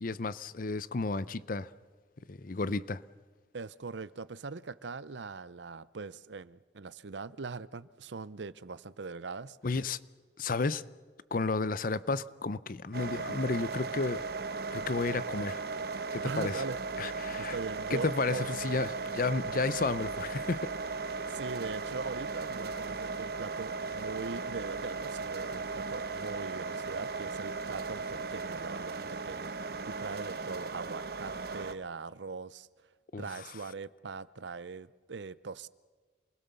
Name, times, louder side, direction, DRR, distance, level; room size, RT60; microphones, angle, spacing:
voice 1, 0.0-1.7 2.3-3.0 9.6-10.0 10.4-10.8 11.3-14.2 14.7-15.6 16.1-16.6 17.0-17.5 17.9-20.7 33.1-33.3, left 3 dB, 50° left, 0.6 m, -32 dB
voice 2, 3.5-9.8 16.2-16.8 17.4-18.5 21.0-32.7 33.2-35.7, right 4 dB, 85° right, 0.7 m, -41 dB
sound 1, 12.9-31.7, right 4 dB, 60° right, 1.1 m, -37 dB
28.0 x 21.0 x 6.9 m
head